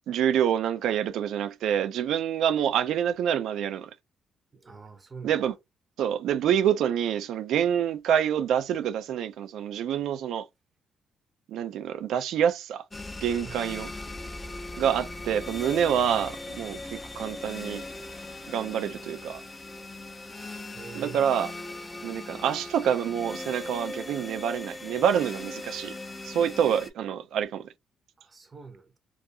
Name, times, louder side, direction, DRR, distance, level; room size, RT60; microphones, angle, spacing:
voice 1, 0.1-3.9 5.2-5.5 6.0-10.4 11.5-12.8 13.2-13.9 14.8-17.8 18.5-19.4 20.9-21.5 22.0-25.9 26.2-27.7, right 9 dB, 80° right, 0.3 m, -27 dB
voice 2, 4.5-5.4 13.4-13.7 20.7-21.2 28.2-28.9, right 5 dB, 30° right, 0.6 m, -44 dB
sound 1, 12.9-26.9, left 2 dB, 20° left, 0.4 m, -39 dB
2.3 x 2.3 x 2.6 m
cardioid pair, 90°, 0 cm